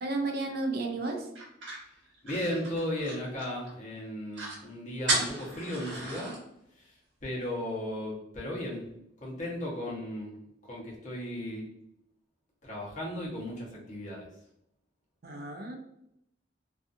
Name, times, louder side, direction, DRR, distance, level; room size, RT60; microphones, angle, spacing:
voice 1, 0.0-1.3 15.2-15.8, right 2 dB, 55° right, 3 dB, 0.4 m, -32 dB
sound 1, 1.4-3.7 4.0-4.1 4.3-4.6 5.1-6.4, right 2 dB, 80° right, 1.0 m, -34 dB
voice 2, 2.2-6.4 6.8-6.9 7.2-8.8 9.2-10.3 10.6-11.6 12.6-14.2, left 1 dB, 40° left, -5 dB, 0.9 m, -35 dB
2.6 x 2.4 x 2.5 m, 0.80 s
head